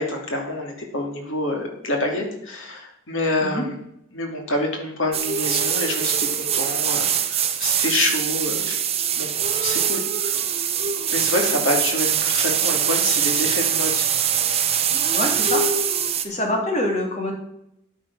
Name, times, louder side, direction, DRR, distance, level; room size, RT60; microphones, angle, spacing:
voice 1, 0.0-3.7 4.1-8.8 9.2-9.3 9.6-10.4 11.1-14.1, left 1 dB, 70° left, 1 dB, 2.8 m, -27 dB
sound 1, 5.1-16.2, right 8 dB, 30° right, 0.9 m, -23 dB
voice 2, 15.1-15.7 16.2-17.3, left 1 dB, 30° left, 1 dB, 2.6 m, -25 dB
10.0 x 9.1 x 6.2 m, 0.77 s
head